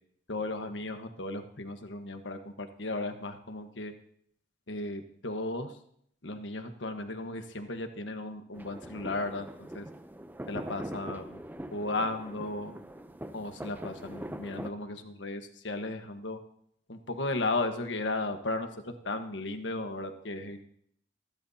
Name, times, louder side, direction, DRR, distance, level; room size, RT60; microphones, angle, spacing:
voice 1, 0.3-3.9 4.7-5.7 6.2-9.9 10.5-11.4 11.7-12.7 13.3-16.4 16.9-20.6, left 2 dB, 85° left, 6 dB, 1.4 m, -35 dB
sound 1, 8.5-14.7, right 1 dB, 10° right, 0.7 m, -42 dB
26.0 x 12.0 x 2.9 m, 0.67 s
head